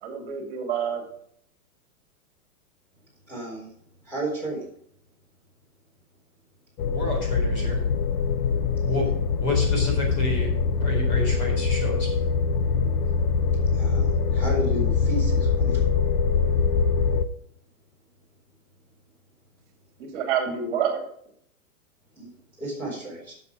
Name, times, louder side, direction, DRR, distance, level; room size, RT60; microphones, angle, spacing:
voice 1, 0.0-1.0 20.0-21.1, right 7 dB, 30° right, 3 dB, 2.7 m, -27 dB
voice 2, 3.3-3.7 4.0-4.7 8.9-9.0 13.7-15.8 22.2-22.3 22.6-23.3, right 1 dB, 5° left, -5 dB, 4.0 m, -33 dB
sound 1, 6.8-17.2, left 5 dB, 90° left, 1.1 m, -23 dB
voice 3, 6.9-7.8 8.9-9.1 9.4-10.5 10.8-12.1, left 1 dB, 30° left, 0 dB, 4.4 m, -29 dB
11.5 x 7.5 x 4.9 m, 0.65 s
supercardioid pair, 180°, 45 cm